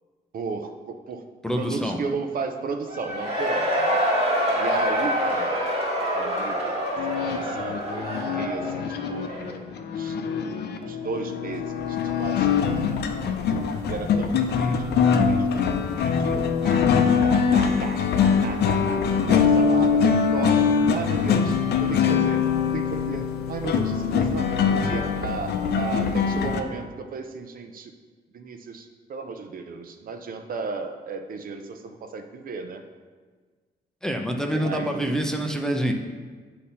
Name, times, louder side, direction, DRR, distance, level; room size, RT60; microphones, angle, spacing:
voice 1, 0.3-1.2 1.5-4.0 4.6-5.7 6.1-6.8 7.2-8.0 8.3-9.6 10.0-10.2 10.8-13.0 13.7-15.6 16.0-22.4 22.7-24.5 24.8-27.9 28.3-32.8 34.5-35.7, right 4 dB, 60° right, 5 dB, 0.6 m, -34 dB
voice 2, 1.4-2.0 34.0-35.9, equal, 5° left, 2 dB, 0.6 m, -26 dB
Cheering / Crowd, 2.9-9.6, equal, 40° right, 1.6 m, -26 dB
sound 1, 7.0-26.6, left 6 dB, 85° left, 0.5 m, -23 dB
8.3 x 2.9 x 5.4 m, 1.5 s
cardioid pair, 105°, 17 cm